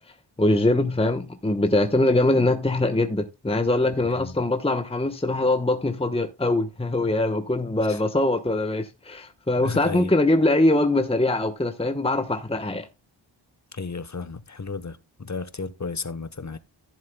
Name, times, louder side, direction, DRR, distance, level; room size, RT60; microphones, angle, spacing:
voice 1, 0.4-12.9, left 2 dB, 10° left, 1.0 m, -22 dB
voice 2, 9.6-10.1 13.7-16.6, left 4 dB, 40° left, 1.0 m, -33 dB
14.5 x 7.3 x 2.2 m
cardioid pair, 45°, 46 cm